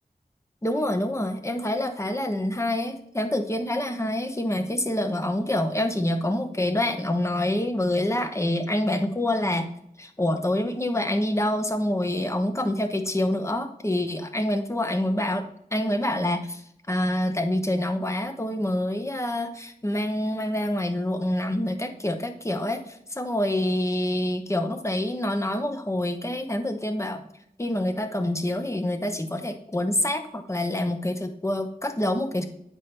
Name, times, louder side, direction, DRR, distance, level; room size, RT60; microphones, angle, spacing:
voice 1, 0.6-9.7 10.0-15.5 15.7-16.6 16.9-27.2 27.6-32.5, left 1 dB, 20° left, 7 dB, 0.9 m, -26 dB
9.6 x 4.6 x 3.3 m, 0.74 s
wide cardioid pair, 65°, 15 cm